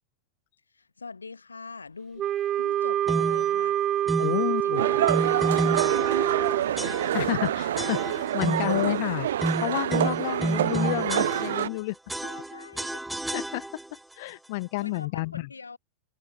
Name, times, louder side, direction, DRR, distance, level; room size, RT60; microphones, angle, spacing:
voice 1, 0.7-2.3 2.6-3.8 4.2-5.0 5.4-7.0 12.2-13.0 14.8-15.8, left 4 dB, 75° left, 7.2 m, -43 dB
Wind instrument woodwind instrument, 2.2-6.7, right 11 dB, 30° right, 1.2 m, -26 dB
sound 1, 3.1-3.5 4.1-4.4 5.1-6.4 6.8-7.4 7.8-8.8 9.4-11.8 12.1-14.0, right 1 dB, 5° right, 1.3 m, -31 dB
voice 2, 4.2-4.8 7.1-9.3 9.6-11.9 13.3-13.7 14.2-15.5, left 23 dB, 50° left, 6.3 m, -30 dB
sound 2, 4.8-11.7, right 11 dB, 60° right, 3.0 m, -27 dB
figure-of-eight pair, 90°, 0 cm